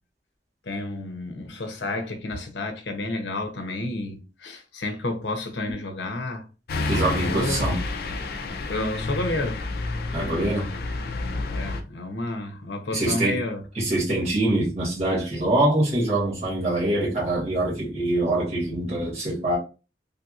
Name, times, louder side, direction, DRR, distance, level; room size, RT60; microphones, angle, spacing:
voice 1, 0.6-6.5 7.2-7.7 8.5-9.6 10.1-10.7 11.5-13.6, left 2 dB, 80° left, 0.8 m, -31 dB
sound 1, 6.7-11.8, left 3 dB, 60° left, 0.5 m, -29 dB
voice 2, 6.9-7.8 10.1-10.7 12.9-13.4 13.7-19.6, right 1 dB, 40° right, 1.6 m, -24 dB
3.3 x 2.8 x 2.4 m
head